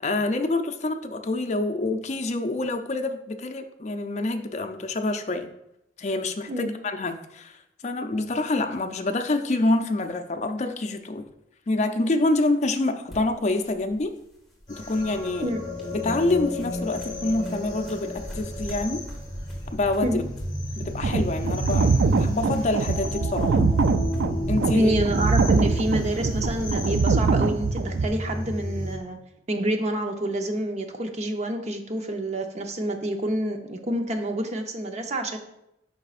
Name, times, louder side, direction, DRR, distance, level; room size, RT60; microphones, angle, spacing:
voice 1, 0.0-5.5 6.0-7.6 7.8-11.2 11.7-14.1 14.7-15.5 15.9-19.0 19.7-20.2 20.8-23.7 24.5-24.9, left 2 dB, 40° left, 6 dB, 0.5 m, -26 dB
sound 1, 13.1-27.1, equal, ahead, 1.8 m, -41 dB
sound 2, 14.7-28.9, left 1 dB, 25° left, 1.9 m, -33 dB
sound 3, 20.8-28.1, right 4 dB, 70° right, 0.4 m, -23 dB
voice 2, 24.7-29.2 29.5-35.4, right 1 dB, 40° right, 5 dB, 0.7 m, -28 dB
9.1 x 5.4 x 2.5 m, 0.82 s
head